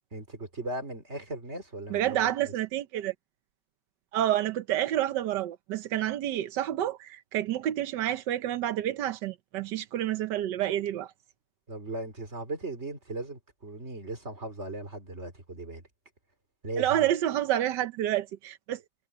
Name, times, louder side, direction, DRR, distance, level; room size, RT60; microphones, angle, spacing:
voice 1, 0.1-2.5 11.7-15.8 16.6-17.1, right 2 dB, 40° right, 4.0 m, -38 dB
voice 2, 1.9-3.1 4.1-11.1 16.8-18.8, right 12 dB, 90° right, 1.4 m, -29 dB
omnidirectional pair, 1.8 m